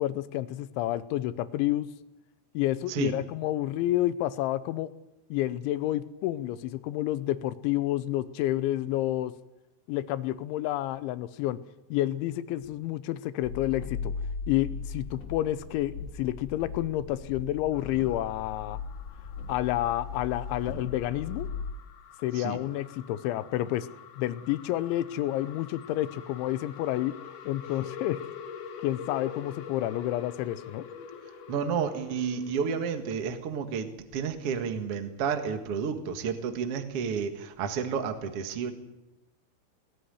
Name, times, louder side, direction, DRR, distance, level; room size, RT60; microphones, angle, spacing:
voice 1, 0.0-1.9 2.5-4.9 5.3-9.3 9.9-11.6 11.9-14.1 14.5-18.8 19.5-21.5 22.2-23.9 24.2-27.2 27.5-28.2 28.8-30.9, left 14 dB, 80° left, 14 dB, 3.1 m, -29 dB
sound 1, 13.4-21.7, left 5 dB, 45° left, 3.5 m, -38 dB
sound 2, 17.7-32.9, left 7 dB, 60° left, 3.5 m, -46 dB
voice 2, 31.5-38.7, right 6 dB, 70° right, 6 dB, 1.4 m, -31 dB
18.5 x 14.5 x 10.0 m, 0.94 s
omnidirectional pair, 5.5 m